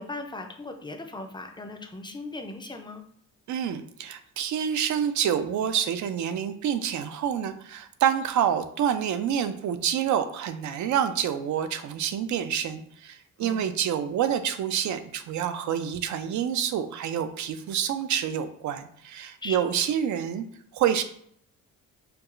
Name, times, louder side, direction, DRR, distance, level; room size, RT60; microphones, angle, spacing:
voice 1, 0.0-3.0 13.4-13.8 19.4-19.9, left 2 dB, 15° left, 4 dB, 0.4 m, -38 dB
voice 2, 3.5-20.5 20.7-21.0, right 9 dB, 60° right, 10 dB, 0.4 m, -27 dB
4.6 x 2.3 x 2.4 m, 0.65 s
cardioid pair, 100°, 33 cm